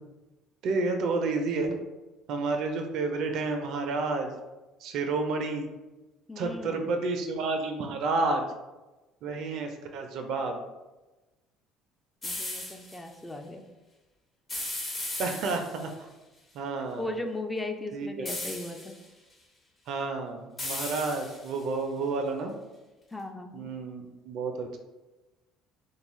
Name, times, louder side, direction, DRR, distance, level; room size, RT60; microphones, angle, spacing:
voice 1, 0.6-1.8 2.3-4.3 4.8-5.7 6.4-8.4 9.2-10.6 15.2-16.1 16.5-17.2 17.9-18.2 19.9-22.5 23.5-24.8, right 3 dB, 65° right, 5 dB, 0.4 m, -30 dB
voice 2, 6.3-6.9 12.2-13.6 17.0-18.9 23.1-23.7, left 2 dB, 15° left, 5 dB, 0.4 m, -37 dB
sound 1, 12.2-13.0 14.5-15.9 18.3-19.0 20.6-21.6, left 2 dB, 30° left, 0.7 m, -36 dB
2.5 x 2.2 x 3.0 m, 1.1 s
hypercardioid pair, 70°, 0 cm